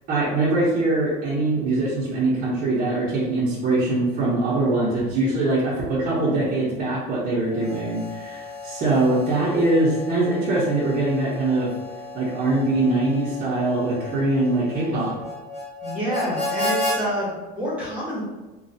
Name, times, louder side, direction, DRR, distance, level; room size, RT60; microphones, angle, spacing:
voice 1, 0.1-11.7 12.1-15.2, right 2 dB, 40° right, -8 dB, 0.8 m, -22 dB
Harmonica, 7.5-17.0, left 2 dB, 55° left, 1.4 m, -33 dB
voice 2, 15.8-18.2, equal, 5° right, -8 dB, 1.2 m, -27 dB
3.1 x 2.3 x 2.7 m, 1.1 s
cardioid pair, 145°, 20 cm